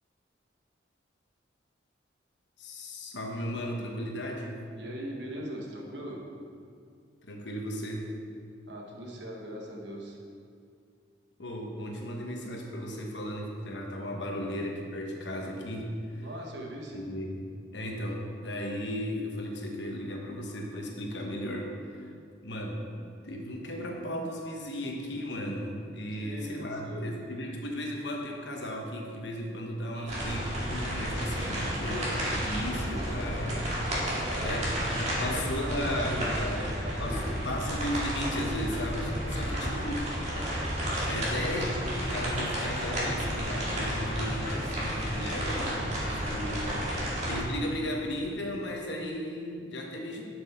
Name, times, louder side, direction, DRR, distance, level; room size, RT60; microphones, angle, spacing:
voice 1, 2.6-4.6 7.2-8.1 11.4-16.3 16.9-17.4 17.7-21.7 22.0-22.1 22.4-22.9 23.2-33.7 34.0-36.6 37.0-40.0 41.0-46.7 47.3-50.2, equal, 65° left, 1 dB, 1.2 m, -35 dB
voice 2, 4.8-6.2 8.7-10.2 16.2-17.1 26.2-27.2 29.9-30.4 34.1-34.8 35.2-37.3 39.4-40.1 46.4-47.0, equal, 65° right, -1 dB, 1.4 m, -41 dB
sound 1, 30.1-47.4, equal, 35° right, 2.2 m, -32 dB
11.0 x 6.3 x 3.7 m, 2.3 s
head